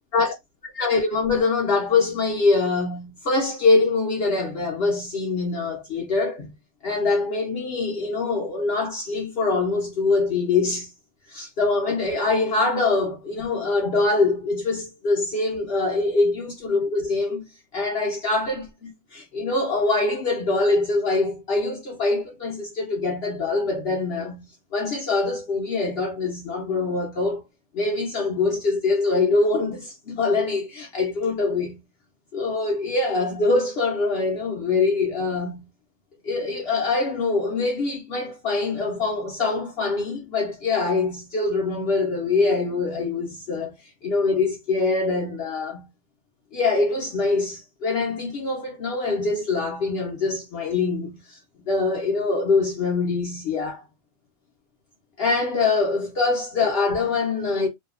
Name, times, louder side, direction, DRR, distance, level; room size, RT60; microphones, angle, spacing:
voice 1, 0.7-6.5 6.8-10.9 11.3-24.5 24.7-27.4 27.7-31.8 32.3-35.7 36.2-43.7 44.0-45.9 46.5-51.4 51.7-53.8 55.2-57.7, left 3 dB, 55° left, 0.8 m, -24 dB
2.7 x 2.3 x 2.4 m
omnidirectional pair, 1.4 m